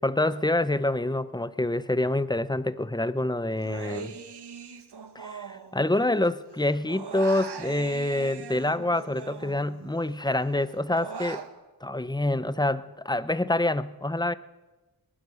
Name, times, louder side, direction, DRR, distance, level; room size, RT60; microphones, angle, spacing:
voice 1, 0.0-4.2 5.1-11.4 11.8-14.3, left 1 dB, 10° left, 15 dB, 0.7 m, -26 dB
Human voice, 3.6-6.3 6.5-10.0 10.4-11.5, right 5 dB, 90° right, 1.8 m, -41 dB
21.5 x 21.0 x 6.6 m, 1.1 s
wide cardioid pair, 120°, 39 cm